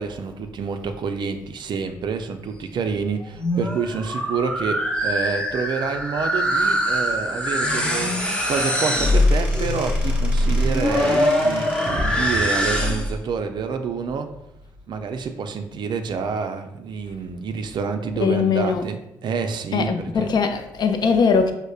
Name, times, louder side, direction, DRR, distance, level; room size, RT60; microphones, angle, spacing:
voice 1, 0.0-8.1 8.5-11.7 12.0-14.3 14.9-19.9 20.2-20.3, right 5 dB, 50° right, 0.4 m, -28 dB
sound 1, 3.2-13.2, left 1 dB, 10° left, 0.8 m, -22 dB
Squeak / Wood, 7.5-12.0, right 1 dB, 10° right, 1.1 m, -37 dB
voice 2, 18.2-18.9 19.7-21.5, left 5 dB, 50° left, 0.4 m, -20 dB
5.1 x 2.1 x 2.3 m
hypercardioid pair, 45°, 9 cm